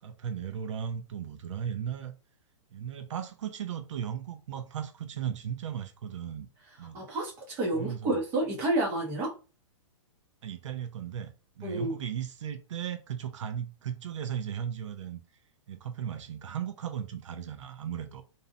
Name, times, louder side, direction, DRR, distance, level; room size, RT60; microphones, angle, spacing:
voice 1, 0.0-2.1 2.7-6.5 6.8-7.0 7.7-8.2 10.4-15.2 15.7-18.2, right 9 dB, 70° right, 0.5 m, -36 dB
voice 2, 6.9-9.3 11.6-11.9, right 2 dB, 15° right, 0.6 m, -29 dB
2.6 x 2.0 x 2.6 m
hypercardioid pair, 175°, 16 cm